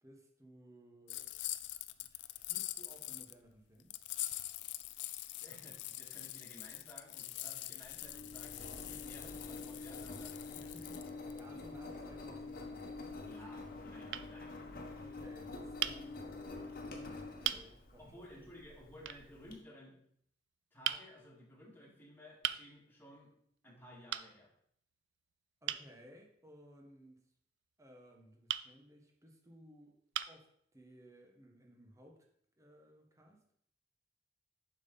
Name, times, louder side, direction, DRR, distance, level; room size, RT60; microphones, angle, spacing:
voice 1, 0.0-1.3 2.0-4.0 10.5-13.8 15.0-18.4 25.6-27.3 27.8-29.9 30.3-32.3 32.6-33.4, equal, 20° right, 2 dB, 1.2 m, -59 dB
sound 1, 1.1-3.3 3.9-11.4, left 16 dB, 85° left, 0.4 m, -44 dB
voice 2, 5.4-10.7 13.2-14.6 18.0-20.0 20.7-23.3 23.6-24.5, equal, 10° left, -4 dB, 2.2 m, -56 dB
Engine, 7.8-19.5, left 3 dB, 55° left, 1.2 m, -47 dB
sound 2, 12.3-12.9 13.7-13.8 14.1-14.3 15.8-16.0 16.8-16.9 17.4-17.7 19.0-19.2 20.8-21.1 22.4-22.6 24.1-24.3 25.7-25.9 28.5-28.7 29.5-29.6 30.1-30.4, right 12 dB, 85° right, 0.4 m, -37 dB
7.4 x 5.8 x 3.9 m, 0.67 s
head